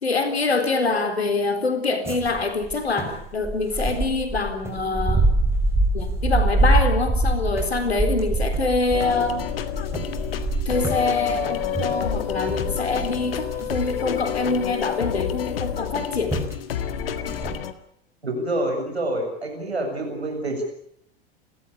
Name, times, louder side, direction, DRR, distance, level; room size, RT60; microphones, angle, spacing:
voice 1, 0.0-5.3 5.9-9.4 10.7-16.3, left 3 dB, 80° left, 8 dB, 4.0 m, -25 dB
sound 1, 2.0-15.2 15.9-16.0 16.3-16.5 16.9-17.5, right 2 dB, 10° right, 6.1 m, -25 dB
sound 2, 8.9-17.7, left 10 dB, 65° left, 1.9 m, -29 dB
voice 2, 18.2-20.6, right 1 dB, 85° right, 2 dB, 7.4 m, -27 dB
30.0 x 14.0 x 8.6 m, 0.70 s
figure-of-eight pair, 85°, 31 cm